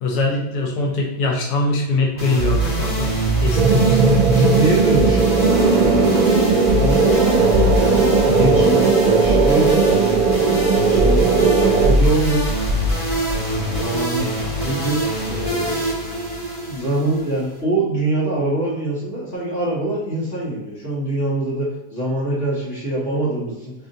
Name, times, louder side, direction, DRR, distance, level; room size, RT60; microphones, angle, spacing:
voice 1, 0.0-3.1 3.4-4.0, left 2 dB, 75° left, -1 dB, 1.3 m, -22 dB
sound 1, 2.2-17.6, right 1 dB, 25° left, 1.3 m, -23 dB
sound 2, 3.6-11.9, right 4 dB, 70° right, 1.0 m, -17 dB
voice 2, 4.3-5.8 6.3-7.0 7.6-9.8 10.9-12.5 13.3-14.3 14.6-15.0 15.3-16.0 16.6-23.7, right 2 dB, 50° left, -8 dB, 1.4 m, -24 dB
5.2 x 2.5 x 2.6 m, 0.93 s
omnidirectional pair, 1.8 m